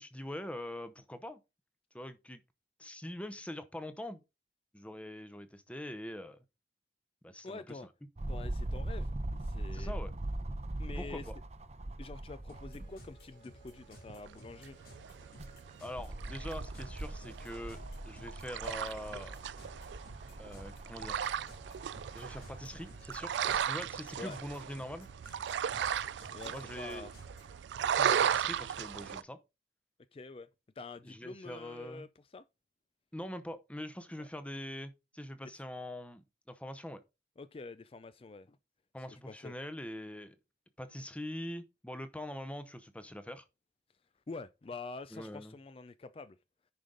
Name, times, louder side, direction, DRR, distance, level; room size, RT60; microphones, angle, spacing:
voice 1, 0.0-1.4 1.9-2.4 2.8-4.2 4.7-6.4 7.2-7.8 9.7-10.1 11.0-11.3 15.8-19.4 20.4-21.3 22.1-25.1 26.5-27.1 27.8-29.4 31.0-32.1 33.1-37.0 38.9-40.4 40.8-43.4 45.1-45.6, left 1 dB, 5° left, 0.7 m, -43 dB
voice 2, 7.4-7.9 8.3-10.0 10.8-11.3 12.0-14.9 24.2-24.4 26.3-27.1 30.1-30.5 30.8-32.5 34.2-34.3 37.4-38.6 39.0-39.5 44.1-46.4, left 3 dB, 30° left, 0.4 m, -47 dB
sound 1, 8.2-13.2 13.7-13.8 15.1-23.7 24.4-24.5, right 1 dB, 40° right, 0.7 m, -41 dB
sound 2, 12.5-27.6, equal, 55° left, 5.1 m, -56 dB
sound 3, 13.8-29.2, right 8 dB, 90° right, 0.3 m, -36 dB
10.0 x 5.1 x 3.8 m
head